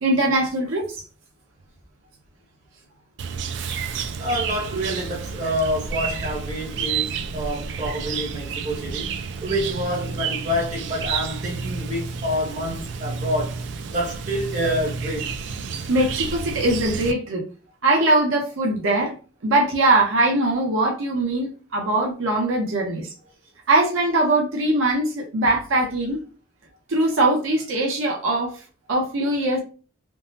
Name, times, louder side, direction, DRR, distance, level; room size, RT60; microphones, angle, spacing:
voice 1, 0.0-1.0 15.9-17.4 17.8-19.1 19.4-23.1 23.7-26.2 26.9-28.6 28.9-29.6, right 2 dB, 80° right, 0.7 m, -21 dB
Chirp tweet, 3.2-17.1, right 5 dB, 60° right, 0.3 m, -30 dB
voice 2, 4.2-9.1 9.4-13.6 13.9-15.3, equal, 35° right, 1.0 m, -27 dB
3.5 x 2.0 x 2.7 m
head